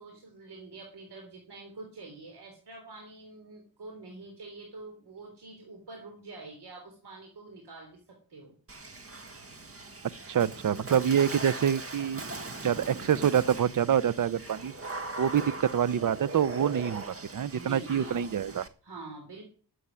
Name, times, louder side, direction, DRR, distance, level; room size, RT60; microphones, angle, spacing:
voice 1, 0.0-9.0 17.5-18.2 18.8-19.4, right 3 dB, 70° right, 3.8 m, -46 dB
Water / Splash splatter, 8.7-18.7, right 3 dB, 35° right, 1.6 m, -40 dB
voice 2, 10.3-12.2 12.6-14.7 15.2-18.6, right 9 dB, 50° right, 0.6 m, -26 dB
13.0 x 8.5 x 9.7 m
wide cardioid pair, 150°, 41 cm